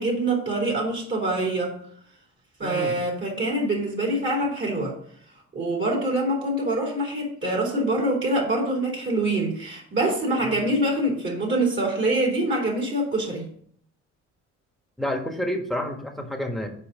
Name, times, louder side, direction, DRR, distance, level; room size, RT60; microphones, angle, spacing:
voice 1, 0.0-1.8 2.6-4.9 5.5-13.5, right 1 dB, 40° right, -2 dB, 2.9 m, -25 dB
voice 2, 2.6-2.9 10.4-10.6 15.0-16.7, left 1 dB, ahead, 3 dB, 1.4 m, -29 dB
5.5 x 4.8 x 6.3 m, 0.63 s
cardioid pair, 90°, 30 cm